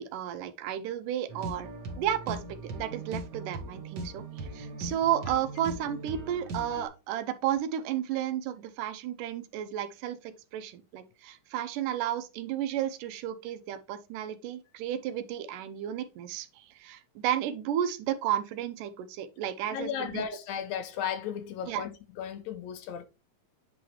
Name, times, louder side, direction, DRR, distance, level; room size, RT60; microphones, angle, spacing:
voice 1, 0.0-1.7 2.0-20.2 21.7-21.8, right 10 dB, 90° right, 2.3 m, -33 dB
sound 1, 1.3-6.9, right 2 dB, 55° right, 1.2 m, -39 dB
voice 2, 19.7-23.1, left 8 dB, 75° left, 1.7 m, -35 dB
8.5 x 3.8 x 3.0 m
omnidirectional pair, 3.7 m